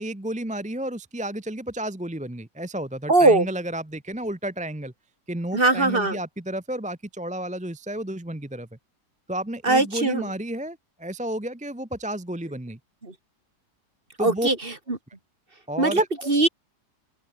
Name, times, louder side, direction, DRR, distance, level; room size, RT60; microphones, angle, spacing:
voice 1, 0.0-4.9 5.3-8.7 9.3-12.8 14.2-14.5 15.7-16.1, right 1 dB, 5° right, 0.8 m, -31 dB
voice 2, 3.1-3.5 5.5-6.2 9.6-10.2 13.0-13.1 14.2-15.0 15.8-16.5, right 2 dB, 30° right, 3.1 m, -20 dB
open air
omnidirectional pair, 1.8 m